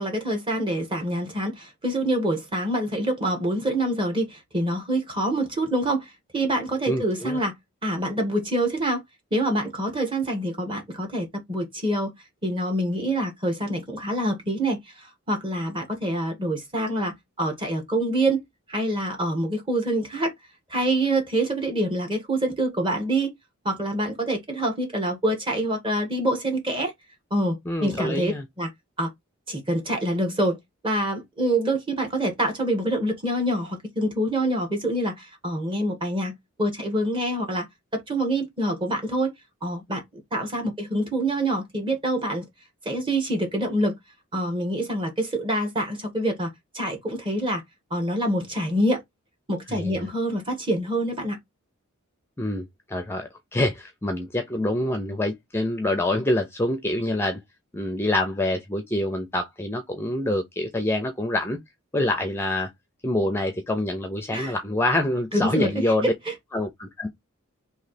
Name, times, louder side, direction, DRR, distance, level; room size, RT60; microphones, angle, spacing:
voice 1, 0.0-7.6 7.8-9.0 9.3-12.1 12.4-18.4 18.7-20.3 20.7-23.3 23.6-26.9 27.3-28.3 28.6-28.7 29.0-29.1 29.5-30.6 30.8-37.7 37.9-39.3 39.6-40.0 40.3-42.5 42.8-44.0 44.3-47.6 47.9-49.0 49.5-51.4 64.3-64.5 65.3-65.7 66.0-66.3, right 1 dB, 25° right, 1.3 m, -26 dB
voice 2, 6.9-7.4 27.7-28.4 49.7-50.0 52.4-57.4 57.7-61.6 61.9-62.7 63.0-66.1 66.5-67.1, left 1 dB, 10° left, 0.5 m, -26 dB
3.2 x 2.8 x 4.0 m
head